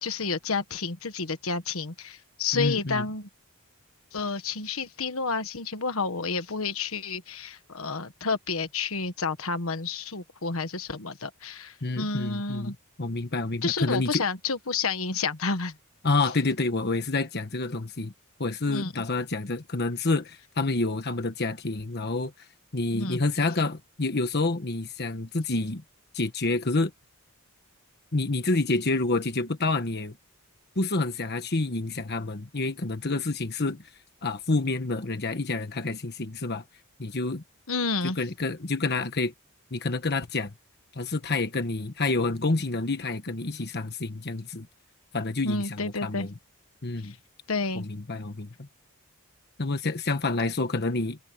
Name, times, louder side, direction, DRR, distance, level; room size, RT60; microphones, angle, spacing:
voice 1, 0.0-3.3 4.1-12.7 13.6-15.7 18.7-18.9 22.9-23.2 37.7-38.2 45.4-46.3 47.0-47.2 47.5-47.9, left 4 dB, 65° left, 1.4 m, -30 dB
voice 2, 2.5-3.1 11.8-14.2 16.0-18.1 18.4-22.3 22.7-25.8 26.1-26.9 28.1-30.2 30.7-33.8 34.2-36.6 37.0-37.4 38.0-39.3 39.7-40.5 40.9-44.7 45.1-46.3 46.8-47.1 47.7-48.7 49.6-51.2, left 3 dB, 50° left, 1.3 m, -28 dB
head